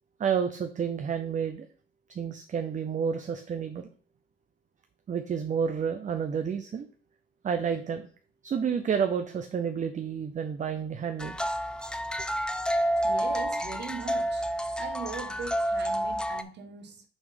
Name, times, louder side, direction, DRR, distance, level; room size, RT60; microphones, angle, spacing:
voice 1, 0.2-1.7 2.1-3.9 5.1-6.9 7.4-8.1 8.4-11.4, right 7 dB, 40° right, 0.6 m, -30 dB
sound 1, 11.2-16.4, equal, 5° left, 0.5 m, -29 dB
voice 2, 13.0-14.4 14.8-17.0, right 5 dB, 60° right, 1.4 m, -40 dB
6.2 x 3.7 x 5.2 m
cardioid pair, 90°, 20 cm